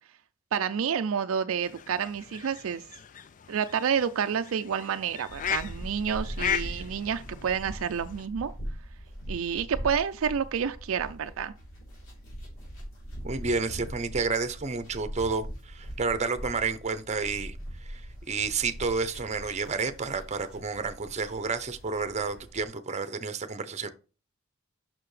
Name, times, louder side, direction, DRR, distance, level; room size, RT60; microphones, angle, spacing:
voice 1, 0.5-2.8 3.5-8.5 9.3-11.5, right 7 dB, 70° right, 0.4 m, -29 dB
sound 1, 1.6-8.3, left 9 dB, 35° left, 0.4 m, -37 dB
sound 2, 5.3-22.7, equal, 70° left, 3.4 m, -41 dB
voice 2, 13.2-23.9, right 4 dB, 30° right, 0.7 m, -30 dB
6.7 x 6.0 x 3.2 m
head